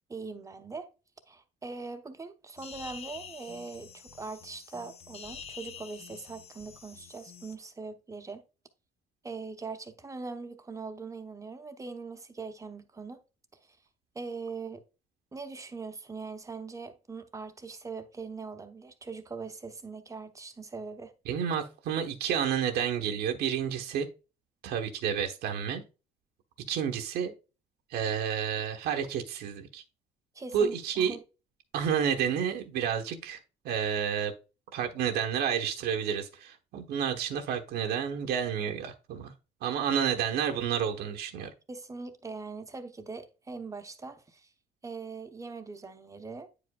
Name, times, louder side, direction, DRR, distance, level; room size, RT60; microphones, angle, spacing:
voice 1, 0.1-0.9 1.3-8.4 9.2-13.2 14.1-14.8 15.3-21.1 30.3-31.2 41.7-44.5 44.8-46.5, right 4 dB, 20° right, 0.8 m, -41 dB
sound 1, 2.6-7.6, left 7 dB, 35° left, 0.6 m, -47 dB
voice 2, 21.2-24.1 24.6-25.8 26.7-27.3 27.9-29.8 30.5-31.2 31.7-33.4 33.6-34.3 34.7-39.3 39.6-41.5, right 8 dB, 75° right, 1.0 m, -30 dB
9.1 x 5.0 x 2.2 m
cardioid pair, 110°, 17 cm